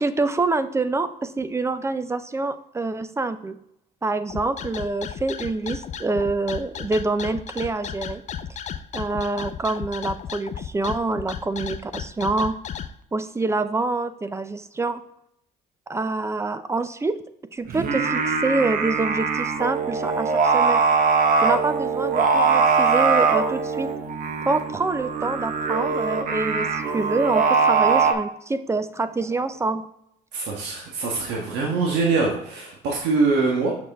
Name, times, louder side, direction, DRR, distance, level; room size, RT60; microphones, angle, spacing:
voice 1, 0.0-3.6 4.0-8.2 8.9-12.6 13.1-15.0 15.9-17.2 17.5-20.8 21.4-23.9 24.5-29.9, right 3 dB, 15° right, 11 dB, 0.5 m, -26 dB
sound 1, 4.3-12.9, left 8 dB, 45° left, 0.5 m, -34 dB
Singing, 17.7-28.1, right 5 dB, 55° right, 1.0 m, -22 dB
voice 2, 30.3-33.7, right 4 dB, 85° right, -2 dB, 1.4 m, -23 dB
6.2 x 6.1 x 3.4 m, 0.75 s
cardioid pair, 110°, 17 cm